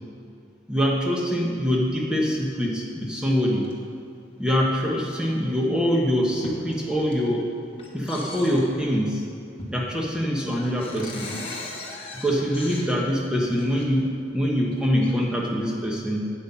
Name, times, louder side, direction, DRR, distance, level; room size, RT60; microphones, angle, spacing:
voice 1, 0.7-3.7 4.4-7.5 7.9-9.2 9.7-11.3 12.1-16.3, equal, 5° right, -3 dB, 1.1 m, -24 dB
sound 1, 3.5-3.8 4.7-4.8 5.4-5.5 6.0-6.6 7.0-7.4 7.8-8.9 9.6-10.0 10.2-10.3 10.6-13.9 14.6-15.1, left 2 dB, 30° left, 1.2 m, -39 dB
8.4 x 7.9 x 5.6 m, 2.4 s
head